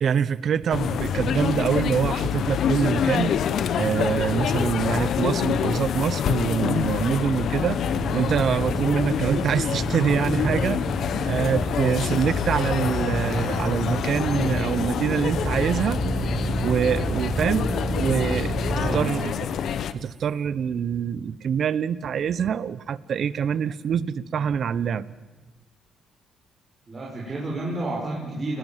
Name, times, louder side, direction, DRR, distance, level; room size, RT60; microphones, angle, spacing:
voice 1, 0.0-3.4 3.8-7.8 8.1-10.8 11.3-16.0 16.6-17.7 18.0-19.3 19.9-25.0, right 7 dB, 60° right, 17 dB, 1.1 m, -25 dB
sound 1, 0.7-19.9, left 8 dB, 65° left, 1.3 m, -26 dB
Car / Idling, 7.2-19.7, right 3 dB, 15° right, 5.9 m, -31 dB
voice 2, 18.7-19.3 26.9-28.6, right 2 dB, 30° right, -3 dB, 6.3 m, -30 dB
30.0 x 21.0 x 7.6 m, 1.3 s
cardioid pair, 90°, 0 cm